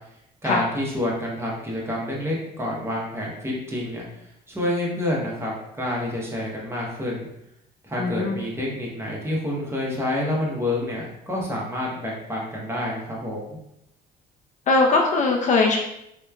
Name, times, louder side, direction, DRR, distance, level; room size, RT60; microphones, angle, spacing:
voice 1, 0.4-4.0 4.5-7.3 7.8-13.6, left 1 dB, 15° right, -3 dB, 0.7 m, -28 dB
voice 2, 8.0-8.4 14.7-15.8, left 3 dB, 45° left, 1 dB, 0.4 m, -20 dB
3.0 x 2.1 x 2.3 m, 0.81 s
cardioid pair, 110°, 17 cm